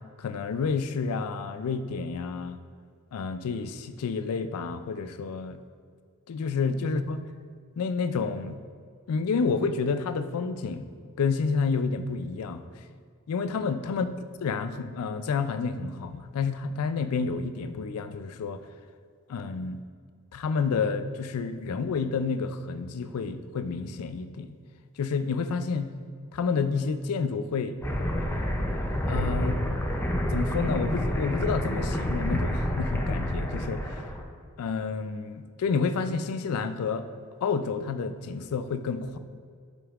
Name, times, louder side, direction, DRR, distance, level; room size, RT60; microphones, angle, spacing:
voice 1, 0.2-2.6 3.1-5.6 6.3-7.2 7.8-8.6 9.1-10.9 11.2-12.6 13.3-14.1 14.4-18.6 19.3-19.8 20.3-24.5 25.0-25.9 26.3-27.8 29.1-29.6 30.3-34.0 34.6-37.1 37.4-39.2, left 5 dB, 80° left, 11 dB, 0.4 m, -29 dB
sound 1, 27.8-34.2, equal, 10° left, 0.4 m, -28 dB
7.7 x 5.2 x 2.4 m, 2.1 s
head